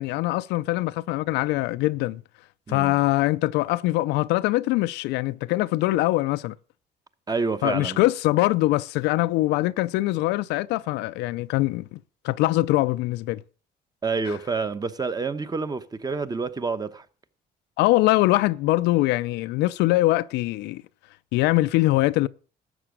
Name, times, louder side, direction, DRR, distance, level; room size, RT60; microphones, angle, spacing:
voice 1, 0.0-2.2 2.7-6.5 7.6-12.0 12.2-13.4 17.8-20.8 21.3-22.3, left 18 dB, 90° left, 0.5 m, -23 dB
voice 2, 7.3-8.0 14.0-17.0, right 4 dB, 25° right, 1.0 m, -28 dB
12.5 x 7.8 x 6.3 m
cardioid pair, 110°, 17 cm